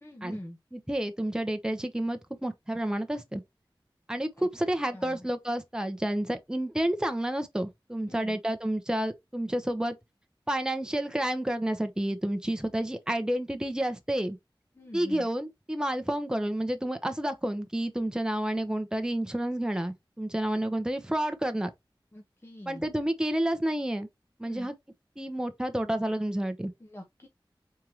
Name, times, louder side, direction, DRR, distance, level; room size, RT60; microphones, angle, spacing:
voice 1, 0.0-0.6 4.4-4.5 4.9-5.3 8.1-8.4 14.7-15.3 22.1-22.9 24.4-24.7 26.8-27.3, left 1 dB, 30° left, 1.0 m, -44 dB
voice 2, 0.7-3.4 4.1-10.0 10.5-14.4 14.9-21.7 22.7-24.1 24.4-24.7 25.2-26.7, right 1 dB, 10° right, 0.8 m, -30 dB
4.6 x 3.7 x 2.9 m
wide cardioid pair, 55°, 9 cm